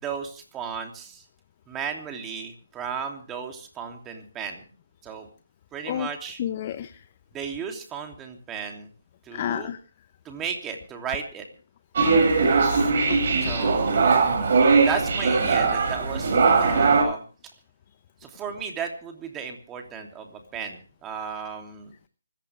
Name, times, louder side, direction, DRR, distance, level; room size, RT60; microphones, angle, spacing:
voice 1, 0.0-1.2 1.7-4.6 5.0-5.3 5.7-6.4 7.3-8.9 9.2-9.7 10.2-11.4 13.4-13.9 14.8-17.2 18.2-21.9, right 7 dB, 15° right, 3 dB, 3.0 m, -34 dB
voice 2, 6.4-6.9 9.3-9.8 12.4-13.5 14.5-14.8, left 10 dB, 35° left, 12 dB, 0.9 m, -32 dB
sound 1, 12.0-17.0, right 4 dB, 45° right, 7.3 m, -20 dB
25.5 x 15.0 x 3.5 m, 0.38 s
figure-of-eight pair, 150°, 0 cm